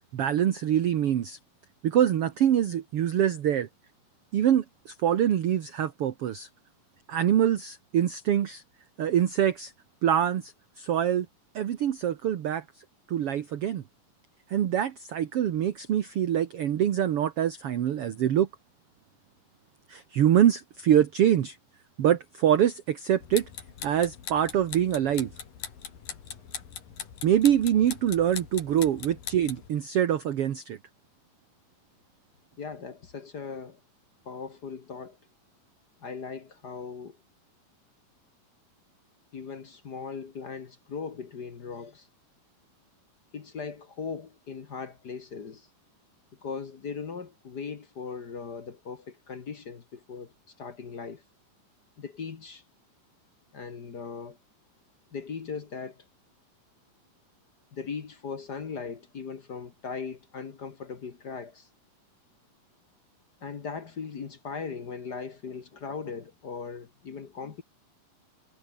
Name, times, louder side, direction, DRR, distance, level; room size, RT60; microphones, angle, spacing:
voice 1, 0.1-1.4 1.8-3.7 4.3-6.5 7.1-8.6 9.0-9.7 10.0-11.3 11.5-12.6 13.1-13.8 14.5-18.5 19.9-21.6 22.0-23.4 23.8-25.3 27.2-30.8, right 10 dB, 60° right, 1.7 m, -25 dB
sound 1, 23.2-29.7, left 8 dB, 75° left, 4.7 m, -41 dB
voice 2, 32.6-33.8 34.2-35.2 36.0-37.2 39.3-42.1 43.3-45.7 46.4-51.2 52.0-52.6 53.5-54.4 55.1-56.0 57.7-61.7 63.4-67.6, left 5 dB, 45° left, 1.3 m, -39 dB
omnidirectional pair, 4.1 m